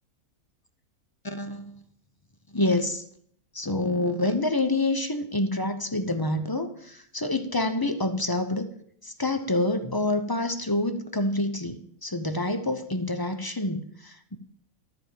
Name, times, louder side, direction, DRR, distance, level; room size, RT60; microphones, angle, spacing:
voice 1, 1.2-1.8 2.5-3.0 3.5-8.7 9.0-14.4, left 2 dB, 20° left, 7 dB, 0.6 m, -27 dB
13.0 x 4.9 x 7.4 m, 0.66 s
omnidirectional pair, 1.5 m